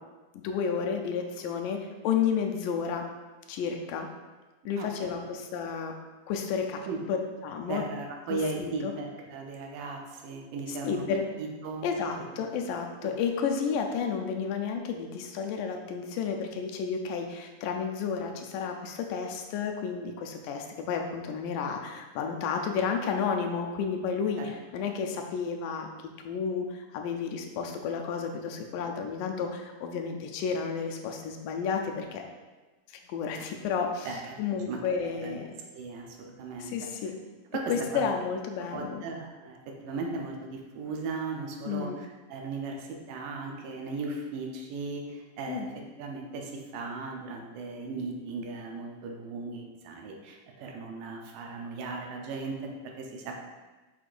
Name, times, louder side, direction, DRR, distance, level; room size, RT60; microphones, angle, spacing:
voice 1, 0.3-3.0 3.5-4.1 4.7-5.9 6.3-6.8 7.1-7.2 7.4-7.8 8.3-8.9 10.8-11.2 11.8-25.9 26.3-32.2 33.1-34.1 34.4-35.5 36.6-37.2 37.7-39.0 41.7-42.0 45.5-45.7, left 6 dB, 85° left, 3 dB, 2.3 m, -31 dB
voice 2, 4.8-5.1 6.9-7.0 7.7-11.0 11.4-11.9 13.0-13.1 24.4-24.5 34.0-34.4 34.7-35.4 35.7-36.9 37.5-38.1 38.7-39.6 39.8-45.7 46.0-52.5 53.0-53.4, right 3 dB, 90° right, 1 dB, 2.5 m, -37 dB
6.3 x 6.2 x 2.5 m, 1.2 s
omnidirectional pair, 3.7 m